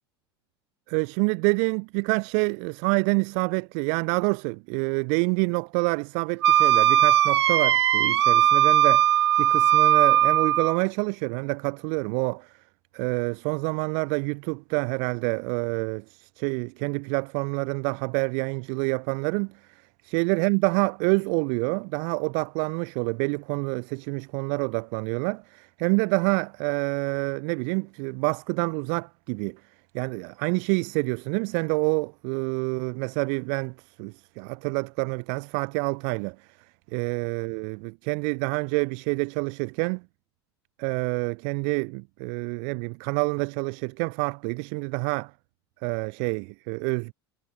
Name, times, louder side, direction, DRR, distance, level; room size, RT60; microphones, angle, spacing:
voice 1, 0.9-9.1 9.4-12.5 12.9-29.6 29.9-36.4 36.9-40.0 40.8-45.3 45.8-47.1, right 40 dB or more, 60° right, 7.7 m, -27 dB
Wind instrument woodwind instrument, 6.4-10.8, right 11 dB, 80° right, 1.7 m, -19 dB
hypercardioid pair, 85°, 14 cm